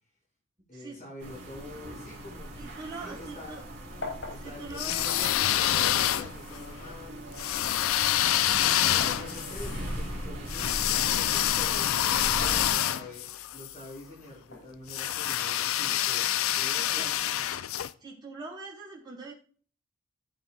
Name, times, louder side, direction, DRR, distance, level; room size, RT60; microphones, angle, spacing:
voice 1, 0.7-2.6 3.0-3.6 4.3-7.3 8.6-13.3 13.5-17.5, left 1 dB, 35° left, -5 dB, 5.6 m, -46 dB
sound 1, 1.2-12.7, equal, 55° right, 3.6 m, -40 dB
voice 2, 2.5-3.6 4.4-5.3 8.8-9.0 16.8-17.1 18.0-19.3, right 3 dB, 20° right, -5 dB, 4.2 m, -42 dB
sound 2, 4.0-6.0 6.8-9.3 9.9-11.1 12.2-13.3 14.4-15.5, left 2 dB, 70° left, 5.1 m, -43 dB
sound 3, 4.7-6.6 7.4-13.7 14.9-17.9, left 12 dB, 85° left, 0.4 m, -27 dB
16.5 x 7.6 x 2.3 m, 0.44 s
head